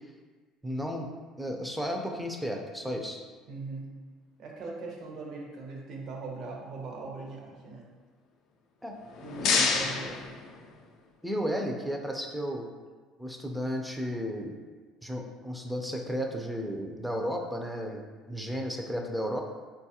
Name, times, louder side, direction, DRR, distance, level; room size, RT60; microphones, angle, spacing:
voice 1, 0.6-1.1 1.4-3.2 8.8-8.9 9.4-9.7 11.2-12.7 13.2-14.6 15.0-19.4, equal, 5° right, 2 dB, 0.4 m, -33 dB
voice 2, 3.5-3.9 4.4-7.9 9.2-10.4, right 3 dB, 55° right, -1 dB, 0.7 m, -40 dB
sound 1, 8.9-11.1, left 5 dB, 65° left, 0.4 m, -29 dB
4.0 x 2.3 x 2.8 m, 1.4 s
supercardioid pair, 100°, 0 cm